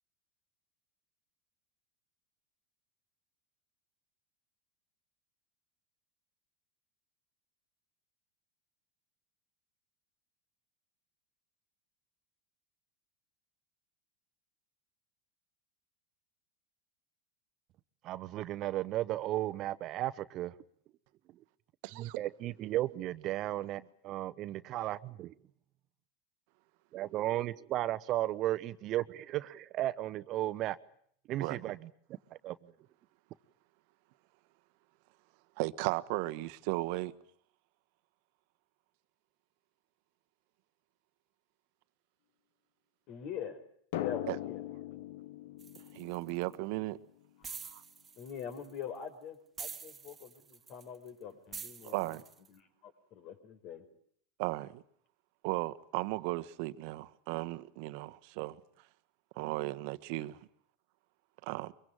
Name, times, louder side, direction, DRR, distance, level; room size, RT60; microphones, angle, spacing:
voice 1, 18.0-20.5 22.0-25.3 26.9-30.8 31.3-31.8 32.4-32.6, right 14 dB, 45° right, 1.0 m, -34 dB
voice 2, 21.8-22.2 24.8-24.9 31.4-31.7 35.6-37.1 44.3-44.4 45.9-47.0 47.7-47.8 51.8-52.2 54.4-54.8 55.4-58.6 59.3-60.4 61.5-61.7, right 20 dB, 60° right, 1.2 m, -36 dB
voice 3, 43.1-43.6 43.9-44.6 47.4-47.6 48.2-52.2 52.5-53.8, left 8 dB, 55° left, 5.6 m, -44 dB
Drum, 43.9-47.3, left 13 dB, 70° left, 1.1 m, -41 dB
sound 1, 45.6-46.5 47.4-48.8 49.6-51.1 51.5-52.5, right 6 dB, 20° right, 1.8 m, -46 dB
24.0 x 23.0 x 9.0 m
hypercardioid pair, 100°, 0 cm